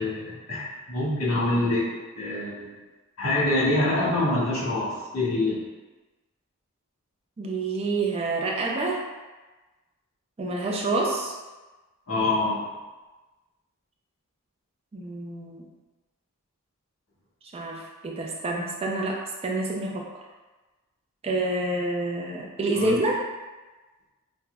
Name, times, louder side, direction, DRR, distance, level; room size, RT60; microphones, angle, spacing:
voice 1, 0.0-1.9 2.1-2.7 3.2-5.6 12.1-12.6 22.7-22.9, left 2 dB, 75° left, -7 dB, 1.5 m, -25 dB
voice 2, 7.4-9.1 10.4-11.3 14.9-15.7 17.5-20.1 21.2-23.3, right 2 dB, 25° right, 0 dB, 0.3 m, -28 dB
5.6 x 2.1 x 2.2 m, 1.2 s
head